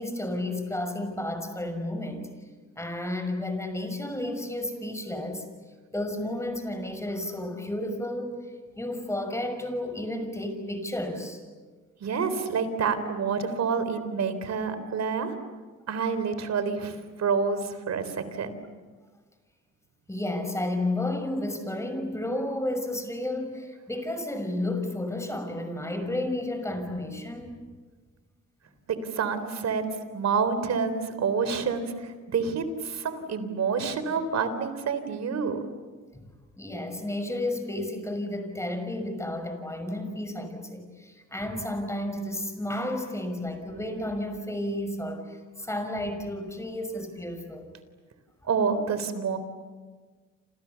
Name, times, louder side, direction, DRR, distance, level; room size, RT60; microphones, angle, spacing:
voice 1, 0.0-2.3 2.8-5.5 5.9-8.4 8.8-11.4 20.1-27.6 36.1-36.2 36.6-47.7, left 1 dB, 10° left, 7 dB, 6.0 m, -32 dB
voice 2, 12.0-15.3 15.9-18.5 28.9-35.6 48.5-49.4, right 5 dB, 60° right, 11 dB, 3.8 m, -28 dB
29.0 x 28.0 x 7.2 m, 1.4 s
cardioid pair, 90°, 30 cm